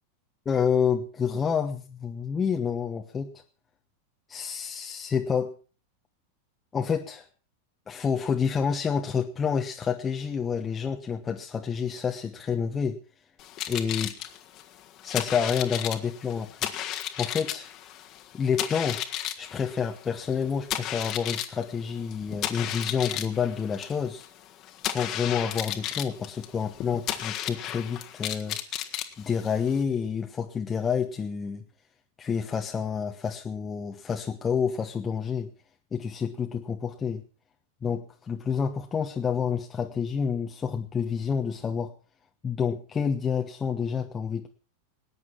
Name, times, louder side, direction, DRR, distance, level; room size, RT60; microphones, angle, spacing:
voice 1, 0.4-3.4 4.3-5.5 6.7-7.2 7.9-13.0 13.7-14.2 15.0-17.7 18.3-19.0 19.4-24.2 24.8-28.6 29.2-31.6 32.2-35.5 35.9-37.2 37.8-41.9 42.4-44.5, left 6 dB, 20° left, 3 dB, 1.1 m, -29 dB
sound 1, 13.4-29.8, left 12 dB, 35° left, 1.6 m, -34 dB
19.5 x 9.5 x 5.8 m, 0.38 s
figure-of-eight pair, 90°, 0 cm